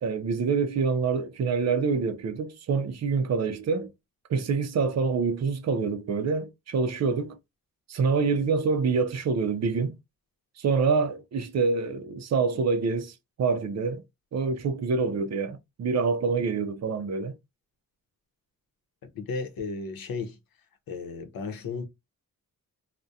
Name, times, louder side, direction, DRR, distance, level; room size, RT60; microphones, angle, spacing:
voice 1, 0.0-3.9 4.3-7.4 7.9-9.9 10.6-14.0 14.3-17.3, right 5 dB, 50° right, 0.4 m, -26 dB
voice 2, 19.2-20.4 20.9-21.8, left 4 dB, 85° left, 0.7 m, -34 dB
2.3 x 2.1 x 2.6 m
wide cardioid pair, 175°, 34 cm